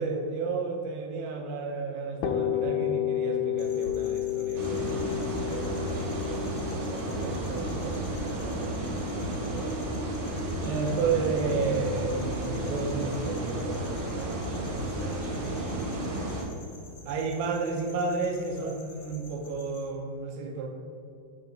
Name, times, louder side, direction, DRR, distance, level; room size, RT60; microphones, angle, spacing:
voice 1, 0.0-9.8 10.6-16.2 17.0-20.7, right 4 dB, 85° right, 2 dB, 3.0 m, -33 dB
sound 1, 2.2-9.9, left 11 dB, 85° left, 2.5 m, -31 dB
sound 2, 3.6-19.9, left 2 dB, 70° left, 1.6 m, -49 dB
sound 3, 4.6-16.4, right 1 dB, 60° right, 2.8 m, -32 dB
8.7 x 3.0 x 6.3 m, 2.4 s
omnidirectional pair, 5.3 m